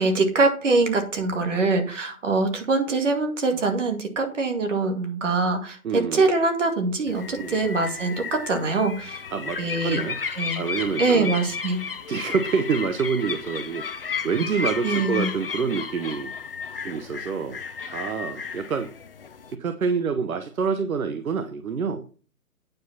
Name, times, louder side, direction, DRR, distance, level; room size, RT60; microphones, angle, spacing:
voice 1, 0.0-9.2 9.6-10.0 10.4-10.6 11.0-11.8 14.8-15.3, right 3 dB, 55° right, 4 dB, 2.3 m, -23 dB
voice 2, 5.8-6.3 7.3-7.6 9.3-10.2 10.5-11.3 12.1-16.3 16.8-17.6 17.9-18.9 19.6-22.0, right 5 dB, 75° right, 10 dB, 1.0 m, -27 dB
sound 1, 7.1-19.5, left 6 dB, 40° left, 0.7 m, -33 dB
9.1 x 5.0 x 5.8 m, 0.39 s
hypercardioid pair, 170°, 43 cm